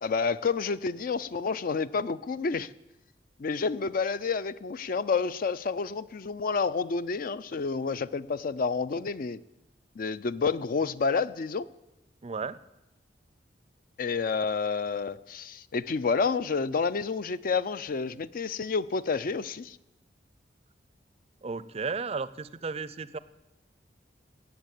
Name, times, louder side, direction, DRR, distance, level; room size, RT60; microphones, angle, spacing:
voice 1, 0.0-2.7 3.4-9.4 10.0-11.7 14.0-19.8, left 5 dB, 50° left, 16 dB, 0.4 m, -29 dB
voice 2, 12.2-12.6 21.4-23.2, right 4 dB, 35° right, 17 dB, 0.5 m, -34 dB
18.0 x 7.2 x 8.3 m, 0.97 s
head